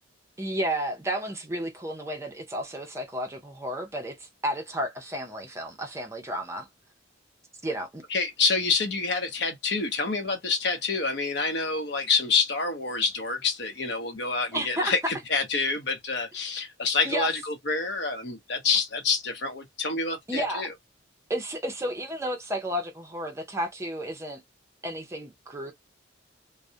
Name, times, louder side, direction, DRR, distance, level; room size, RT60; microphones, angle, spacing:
voice 1, 0.4-6.7 7.6-8.0 14.5-14.9 17.0-17.3 20.3-20.7 21.3-24.4 24.8-25.7, right 1 dB, 15° right, 0.5 m, -32 dB
voice 2, 8.1-20.7, left 4 dB, 60° left, 0.7 m, -27 dB
2.3 x 2.0 x 2.7 m
head